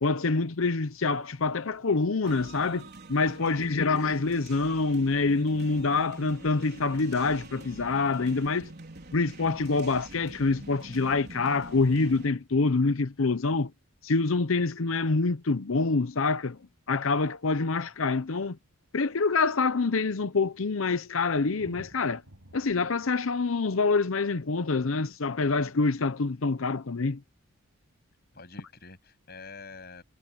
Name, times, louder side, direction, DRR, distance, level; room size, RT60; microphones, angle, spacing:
voice 1, 0.0-8.7 9.1-13.7 14.0-16.6 16.9-18.6 18.9-22.2 22.5-27.2, left 3 dB, 70° left, 0.7 m, -26 dB
sound 1, 2.2-12.3, right 2 dB, 50° right, 4.9 m, -46 dB
voice 2, 3.4-3.9 28.3-30.0, left 4 dB, 50° left, 8.0 m, -47 dB
Thunder, 18.6-26.0 27.6-27.7, equal, 90° right, 7.8 m, -57 dB
head